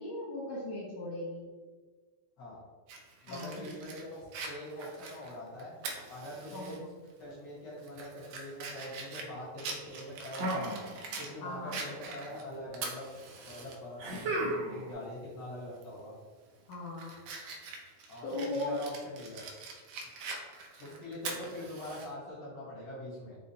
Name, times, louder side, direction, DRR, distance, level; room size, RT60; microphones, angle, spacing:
voice 1, 0.0-1.5 3.3-3.7 6.5-6.9 11.4-11.8 16.7-17.1 18.2-18.8, left 1 dB, 70° left, -4 dB, 1.7 m, -38 dB
Fire, 2.9-6.8 7.2-7.3 7.8-11.3 11.7-13.8 14.2-14.3 15.7-16.0 16.5-22.1, right 4 dB, 80° right, 1.9 m, -43 dB
voice 2, 3.2-5.7 6.1-6.8 7.2-10.8 11.2-13.1 13.4-16.1 18.1-19.4 20.8-23.4, left 1 dB, 50° left, -7 dB, 1.4 m, -43 dB
sound 1, 10.3-11.3 11.6-12.4 14.0-14.9, right 1 dB, 65° right, 1.8 m, -35 dB
5.5 x 2.1 x 4.1 m, 1.4 s
omnidirectional pair, 3.6 m